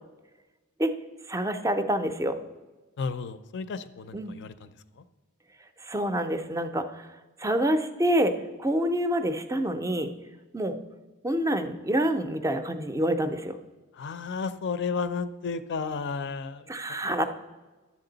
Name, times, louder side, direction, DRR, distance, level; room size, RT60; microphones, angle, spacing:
voice 1, 1.3-2.4 4.1-4.3 5.8-7.1 7.4-8.3 8.6-10.1 10.5-10.8 11.2-13.6 16.7-17.3, right 1 dB, 15° right, 9 dB, 0.5 m, -27 dB
voice 2, 3.0-4.5 13.9-16.7, left 5 dB, 55° left, 13 dB, 0.5 m, -32 dB
11.0 x 7.4 x 3.9 m, 1.2 s
head